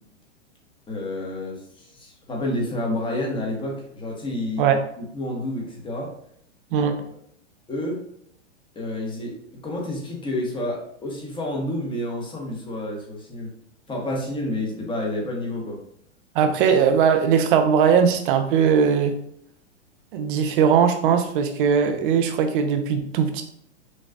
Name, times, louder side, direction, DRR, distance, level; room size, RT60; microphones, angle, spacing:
voice 1, 0.9-4.7 5.0-6.1 6.7-6.9 7.7-8.0 8.7-9.4 9.6-13.5 13.9-15.8, left 1 dB, 15° left, -1 dB, 0.9 m, -29 dB
voice 2, 6.7-7.0 16.3-19.1 20.1-23.4, right 7 dB, 45° right, 7 dB, 0.6 m, -19 dB
6.2 x 2.3 x 2.2 m, 0.69 s
hypercardioid pair, 120°, 35 cm